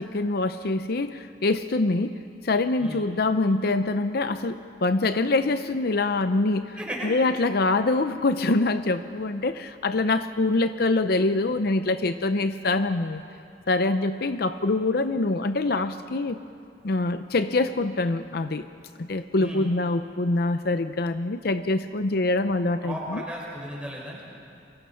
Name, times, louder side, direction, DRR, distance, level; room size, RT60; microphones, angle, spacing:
voice 1, 0.0-2.2 2.4-6.8 7.0-13.2 13.7-16.4 16.8-18.7 19.0-23.2, left 2 dB, 60° left, 10 dB, 0.6 m, -25 dB
voice 2, 6.8-7.1 19.4-19.7 22.8-24.2, equal, 5° right, -3 dB, 5.6 m, -35 dB
29.0 x 24.0 x 5.8 m, 2.5 s
head